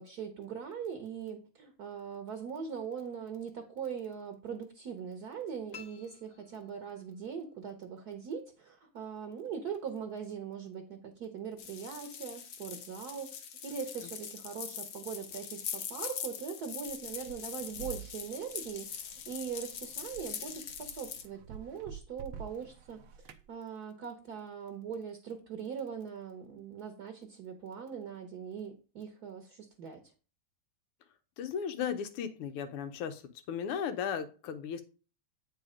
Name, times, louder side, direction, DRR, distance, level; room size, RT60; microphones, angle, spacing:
voice 1, 0.0-13.3 13.6-30.0, right 7 dB, 55° right, 6 dB, 1.2 m, -41 dB
sound 1, 5.7-7.3, left 8 dB, 40° left, 1.1 m, -52 dB
sound 2, 11.6-21.3, left 8 dB, 70° left, 1.6 m, -42 dB
sound 3, 16.9-23.5, right 7 dB, 75° right, 1.4 m, -49 dB
voice 2, 31.4-33.2 33.5-34.8, left 7 dB, 85° left, 10 dB, 1.8 m, -36 dB
8.4 x 4.3 x 5.0 m, 0.35 s
omnidirectional pair, 2.4 m